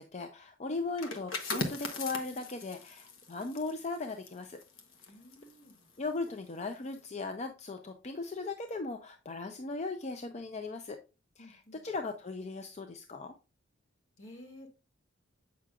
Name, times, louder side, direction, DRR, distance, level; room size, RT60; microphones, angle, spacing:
voice 1, 0.0-4.6 6.0-11.0 11.4-13.3, left 3 dB, 35° left, 6 dB, 0.5 m, -38 dB
sound 1, 0.9-6.4 6.7-7.0, left 3 dB, 80° left, 1.1 m, -40 dB
voice 2, 5.1-5.9 11.4-11.8 14.2-14.7, left 1 dB, 65° left, 2 dB, 2.1 m, -52 dB
7.7 x 5.7 x 2.4 m, 0.30 s
head